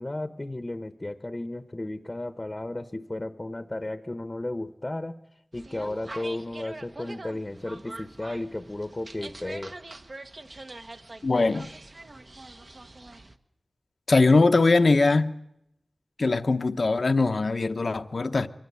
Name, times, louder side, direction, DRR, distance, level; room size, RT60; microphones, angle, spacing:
voice 1, 0.0-5.2 5.5-9.7, left 1 dB, 30° left, 0.9 m, -34 dB
sound 1, 5.5-13.4, right 2 dB, 45° right, 1.1 m, -43 dB
voice 2, 11.2-11.7 14.1-15.3 16.2-18.5, left 3 dB, 60° left, 0.8 m, -21 dB
23.0 x 17.0 x 9.5 m
wide cardioid pair, 75°, 0 cm